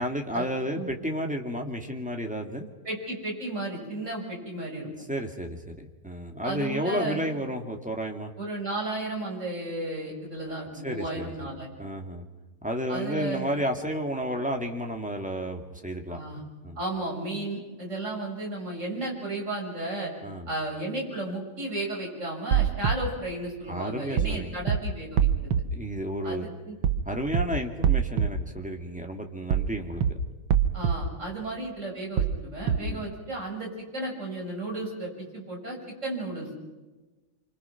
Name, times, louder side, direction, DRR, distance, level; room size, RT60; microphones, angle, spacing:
voice 1, 0.0-2.7 5.1-8.3 10.8-11.5 11.8-12.2 12.6-16.2 16.6-16.8 20.2-20.5 23.7-24.6 25.7-26.5 27.1-30.0 32.8-33.1, equal, 5° right, 2 dB, 2.2 m, -32 dB
voice 2, 2.8-4.9 6.4-7.2 8.4-11.7 12.9-13.5 16.1-16.4 16.8-20.1 20.5-25.3 26.2-26.7 30.7-36.7, right 1 dB, 35° right, -1 dB, 6.9 m, -34 dB
sound 1, 22.5-22.9 24.2-24.4 24.7-24.8 25.2-25.6 26.8-27.0 27.3-27.4 27.8-28.3 29.5-29.7 30.0-30.1 30.5-30.9 32.2-32.4 32.7-32.8, right 9 dB, 85° right, 1.9 m, -23 dB
27.0 x 25.5 x 6.0 m, 1.2 s
omnidirectional pair, 2.2 m